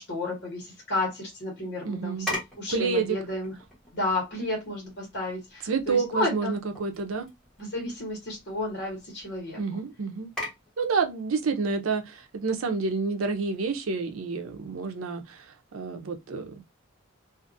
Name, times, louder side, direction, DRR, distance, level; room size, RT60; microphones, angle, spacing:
voice 1, 0.0-3.5 3.9-6.6 7.6-9.6, left 2 dB, 55° left, 1.2 m, -32 dB
voice 2, 1.8-2.3 2.7-3.2 5.6-7.3 9.6-10.3 10.8-15.5 15.7-16.6, right 4 dB, 90° right, 0.6 m, -29 dB
sound 1, 2.1-14.1, left 1 dB, 5° left, 1.1 m, -43 dB
2.5 x 2.4 x 2.5 m
head